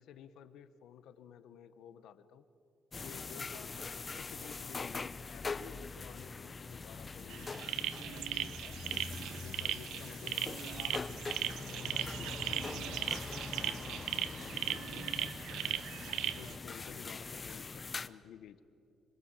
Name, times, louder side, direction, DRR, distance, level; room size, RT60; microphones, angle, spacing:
voice 1, 0.0-2.5 3.0-8.8 9.4-15.8 16.3-18.6, left 9 dB, 80° left, 12 dB, 1.2 m, -54 dB
sound 1, 2.9-18.1, left 4 dB, 35° left, 0.9 m, -43 dB
sound 2, 7.3-16.5, right 11 dB, 85° right, 0.8 m, -38 dB
26.5 x 23.5 x 9.0 m, 2.5 s
cardioid pair, 90°, 0 cm